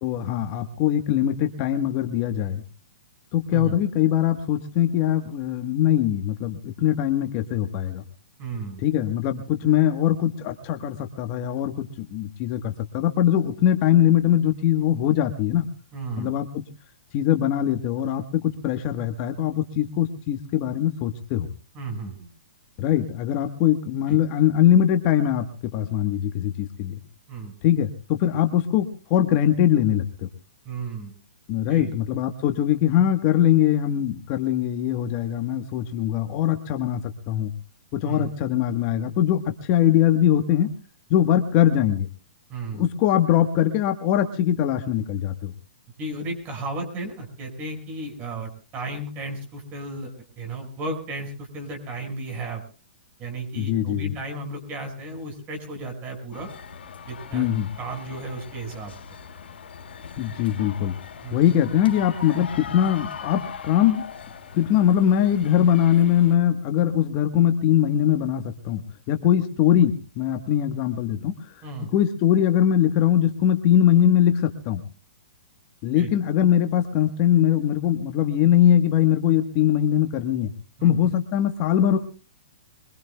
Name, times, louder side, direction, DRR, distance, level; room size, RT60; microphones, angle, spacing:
voice 1, 0.0-2.6 3.3-8.0 8.8-15.7 16.2-16.6 17.1-21.5 22.8-27.0 27.6-30.3 31.5-37.5 37.9-40.7 41.1-42.1 42.7-45.5 53.6-54.0 57.3-57.7 60.2-60.9 61.3-64.0 64.5-68.8 69.1-71.3 71.9-74.8 75.8-80.5 80.8-82.0, left 10 dB, 35° left, 6 dB, 1.3 m, -21 dB
voice 2, 8.4-8.8 15.9-16.3 21.7-22.3 24.1-24.2 27.3-27.5 30.6-31.1 31.7-31.9 38.0-38.3 42.5-42.9 46.0-52.6 53.2-56.5 57.1-57.5 57.8-58.9 61.2-61.4 71.6-71.9 76.0-76.1 80.8-81.0, right 2 dB, 30° right, 4 dB, 5.5 m, -34 dB
sound 1, 56.3-66.4, left 6 dB, 85° left, 3.0 m, -40 dB
24.0 x 21.5 x 2.3 m, 0.37 s
hypercardioid pair, 140°, 6 cm